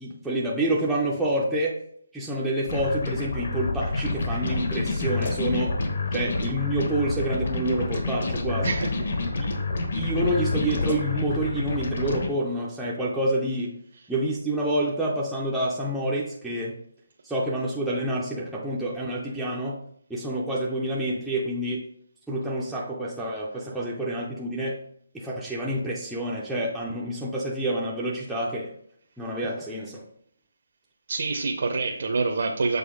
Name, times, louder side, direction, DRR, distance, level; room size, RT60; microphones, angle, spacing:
voice 1, 0.0-1.8 2.1-5.8 6.1-8.7 9.4-9.5 9.9-13.7 14.1-16.8 17.2-19.8 20.1-21.8 22.3-24.8 25.1-28.7 29.2-30.0, right 1 dB, ahead, -7 dB, 0.5 m, -28 dB
sound 1, 2.7-12.3, left 3 dB, 50° left, 1.1 m, -28 dB
voice 2, 31.1-32.8, right 4 dB, 50° right, 2 dB, 0.7 m, -26 dB
6.9 x 3.9 x 3.6 m, 0.67 s
hypercardioid pair, 175°, 0 cm